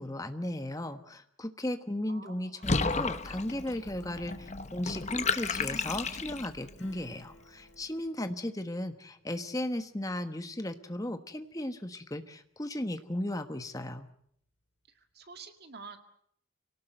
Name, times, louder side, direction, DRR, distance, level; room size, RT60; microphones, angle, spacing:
voice 1, 0.0-14.1, left 1 dB, 15° left, 8 dB, 1.2 m, -36 dB
voice 2, 2.1-2.6 14.9-16.0, right 4 dB, 50° right, 6 dB, 2.1 m, -48 dB
Water / Bathtub (filling or washing), 2.6-6.7, left 4 dB, 35° left, 0.9 m, -32 dB
Acoustic guitar / Strum, 6.8-13.0 13.4-13.5, left 1 dB, 60° left, 6.5 m, -63 dB
26.0 x 18.0 x 7.9 m, 0.70 s
head